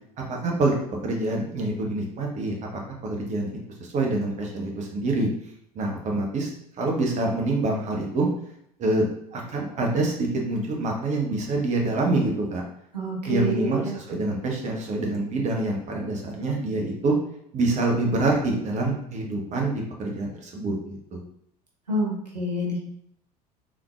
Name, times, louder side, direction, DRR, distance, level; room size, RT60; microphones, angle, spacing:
voice 1, 0.3-0.8 1.0-2.5 3.0-3.5 3.8-5.3 5.7-6.5 6.8-8.3 8.8-9.1 9.3-12.6 13.3-17.1 17.5-21.2, right 2 dB, 35° right, -1 dB, 0.9 m, -26 dB
voice 2, 12.9-13.9 21.9-22.8, right 1 dB, 85° right, -3 dB, 0.8 m, -27 dB
3.7 x 3.0 x 2.4 m, 0.72 s
figure-of-eight pair, 65°, 20 cm